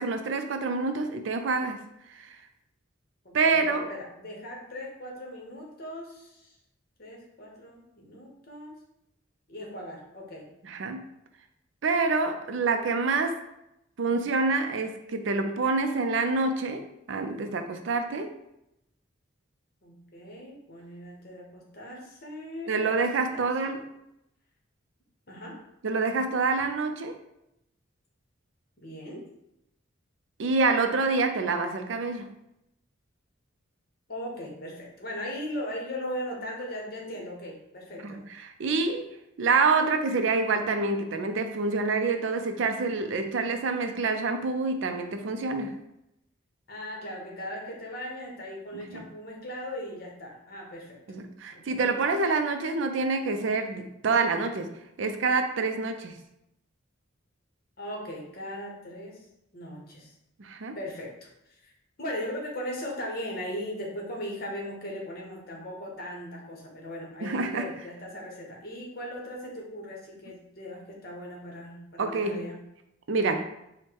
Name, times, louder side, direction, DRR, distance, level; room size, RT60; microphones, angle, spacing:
voice 1, 0.0-1.8 2.1-2.4 3.3-3.9 10.6-11.0 11.8-13.4 14.0-16.8 17.1-18.3 22.7-23.8 25.8-27.2 30.4-32.3 38.0-45.7 48.9-49.0 51.1-54.7 55.0-56.2 60.4-60.8 67.2-67.7 72.0-72.5 73.1-73.4, right 4 dB, 65° right, 7 dB, 0.4 m, -27 dB
voice 2, 3.2-6.6 7.0-8.8 9.5-10.5 19.8-23.5 25.3-25.6 28.8-29.2 34.1-38.2 46.7-51.0 51.5-51.8 57.8-59.3 59.5-60.1 60.7-61.7 62.0-72.6, equal, 45° left, -1 dB, 1.0 m, -38 dB
4.4 x 2.1 x 4.6 m, 0.84 s
head